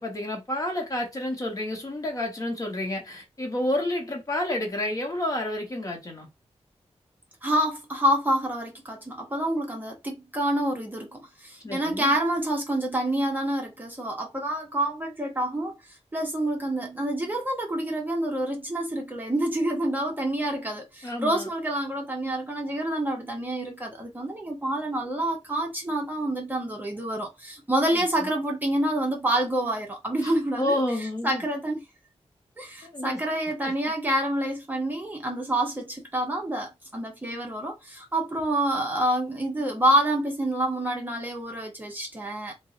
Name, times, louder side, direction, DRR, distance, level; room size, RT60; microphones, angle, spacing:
voice 1, 0.0-6.3 9.3-9.4 11.6-12.1 21.0-21.5 27.9-28.3 30.2-31.4 32.8-33.2, left 1 dB, 30° left, 0.8 m, -30 dB
voice 2, 7.4-15.8 16.1-30.8 31.2-31.8 32.6-42.5, right 1 dB, 15° right, 0.6 m, -27 dB
2.5 x 2.0 x 3.7 m
wide cardioid pair, 165°, 11 cm